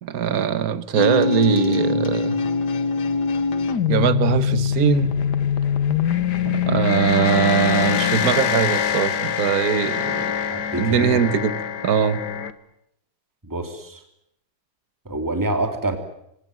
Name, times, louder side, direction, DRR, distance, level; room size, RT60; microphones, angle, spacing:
voice 1, 0.0-2.4 3.9-5.1 6.5-10.3 10.8-11.5 11.8-12.2, right 8 dB, 50° right, 14 dB, 1.6 m, -21 dB
sound 1, 1.0-12.5, left 7 dB, 55° left, 1.7 m, -23 dB
voice 2, 10.5-11.2 13.4-14.0 15.0-16.0, right 2 dB, 10° right, 7 dB, 2.8 m, -26 dB
26.5 x 18.0 x 9.2 m, 0.77 s
omnidirectional pair, 2.3 m